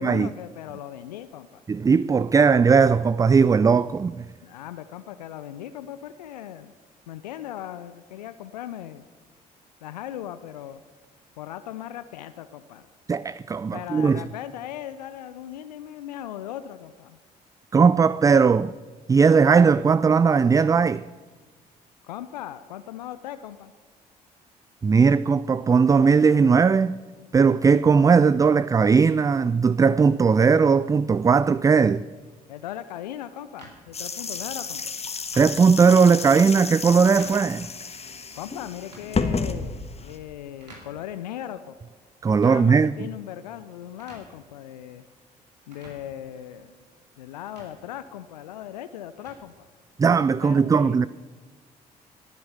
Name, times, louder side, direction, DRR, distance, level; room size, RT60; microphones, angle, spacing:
voice 1, 0.0-1.6 4.4-6.7 7.1-9.0 9.8-10.8 11.4-12.9 13.7-17.2 22.0-23.7 32.5-34.8 38.3-41.7 42.4-45.0 45.7-46.7 47.2-49.7 50.4-51.0, left 11 dB, 80° left, 0.5 m, -38 dB
voice 2, 1.7-4.2 13.1-14.2 17.7-18.7 19.1-21.0 24.8-27.0 27.3-32.0 35.4-37.7 42.2-43.0 50.0-51.1, right 5 dB, 15° right, 0.3 m, -18 dB
sound 1, 33.6-50.2, right 2 dB, 85° right, 2.5 m, -54 dB
sound 2, 33.9-40.2, left 4 dB, 30° left, 1.4 m, -31 dB
14.0 x 11.0 x 6.9 m
figure-of-eight pair, 45°, 21 cm